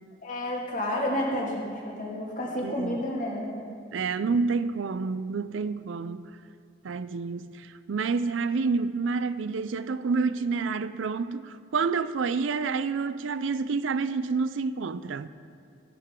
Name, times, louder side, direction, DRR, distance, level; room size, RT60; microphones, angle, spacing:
voice 1, 0.2-3.6, left 1 dB, 45° left, 2.0 m, -30 dB
voice 2, 2.6-3.0 3.9-6.3 6.8-15.3, right 4 dB, 85° right, 0.4 m, -28 dB
14.5 x 10.5 x 3.7 m
head